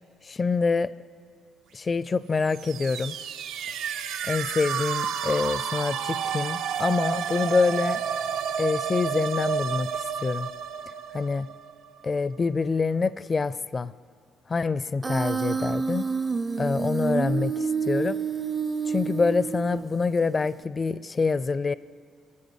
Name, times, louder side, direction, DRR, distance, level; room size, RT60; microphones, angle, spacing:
voice 1, 0.2-0.9 1.7-3.2 4.3-8.0 8.6-10.5 11.1-11.5 12.0-13.9 14.5-16.1 16.6-18.2 18.8-21.7, left 4 dB, 35° left, 16 dB, 0.4 m, -26 dB
sound 1, 2.4-12.1, right 7 dB, 90° right, 0.7 m, -31 dB
Human voice, 15.0-20.0, right 5 dB, 30° right, 0.5 m, -28 dB
29.5 x 14.0 x 8.2 m, 2.2 s
cardioid pair, 90°, 0 cm